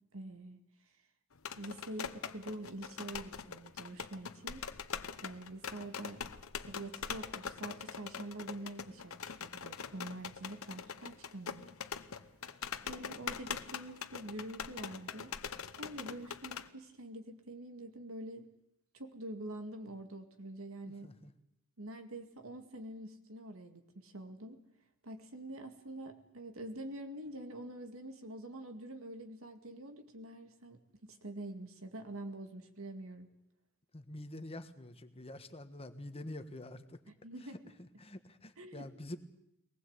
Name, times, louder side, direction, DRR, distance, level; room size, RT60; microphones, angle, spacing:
voice 1, 0.1-0.6 1.6-4.7 5.2-6.2 6.6-11.8 12.9-15.4 15.8-18.5 18.9-21.1 21.8-24.6 25.0-33.3 37.1-37.6 38.6-38.9, right 1 dB, 75° right, 7 dB, 2.2 m, -46 dB
sound 1, 1.4-16.7, left 7 dB, 80° left, 1.0 m, -43 dB
voice 2, 33.9-37.0 37.8-39.2, left 1 dB, 30° left, 9 dB, 1.4 m, -46 dB
22.5 x 19.5 x 8.2 m, 0.81 s
head